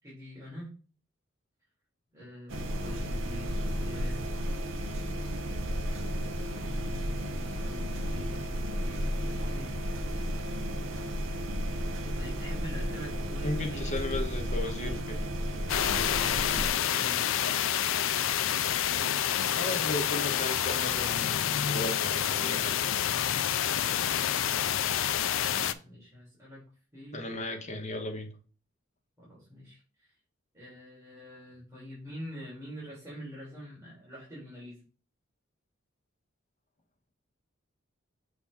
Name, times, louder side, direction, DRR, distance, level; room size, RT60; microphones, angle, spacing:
voice 1, 0.0-0.8 2.1-4.3 6.6-9.7 12.2-13.9 16.3-17.6 25.5-26.6 26.9-27.3 29.2-30.1 30.5-34.8, equal, 15° right, 3.1 m, -45 dB
sound 1, 2.5-16.7, equal, 70° right, 0.8 m, -33 dB
voice 2, 13.4-15.2 19.5-22.8 27.1-28.3, left 2 dB, 35° left, 1.2 m, -35 dB
sound 2, 15.7-25.7, left 10 dB, 75° left, 0.4 m, -28 dB
7.0 x 4.0 x 3.5 m
head